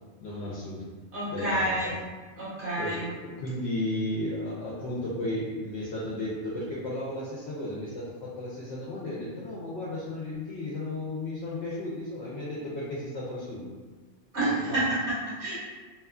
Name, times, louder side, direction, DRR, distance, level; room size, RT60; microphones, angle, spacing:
voice 1, 0.2-0.8 1.3-2.0 2.7-13.6 14.4-14.8, left 1 dB, 75° left, -7 dB, 0.8 m, -34 dB
voice 2, 1.1-2.0 2.4-3.1 14.3-15.5, right 1 dB, 75° right, -9 dB, 1.3 m, -29 dB
2.9 x 2.3 x 2.4 m, 1.4 s
omnidirectional pair, 1.2 m